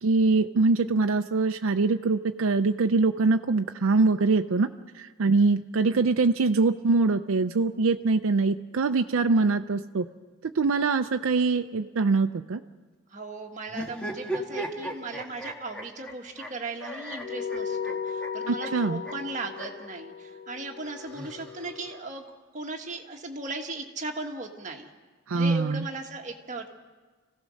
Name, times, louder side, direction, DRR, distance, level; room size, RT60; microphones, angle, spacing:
voice 1, 0.0-4.7 4.9-10.0 10.4-12.6 18.5-19.0 25.3-25.9, right 3 dB, 90° right, 6 dB, 0.5 m, -23 dB
voice 2, 13.1-22.3 22.5-24.9 25.3-26.7, right 3 dB, 35° right, 2 dB, 1.7 m, -37 dB
sound 1, 13.7-19.9 20.8-22.0, right 1 dB, 5° left, 1.5 m, -37 dB
sound 2, 17.2-22.0, left 6 dB, 55° left, 0.6 m, -36 dB
26.5 x 16.0 x 6.4 m, 1.4 s
head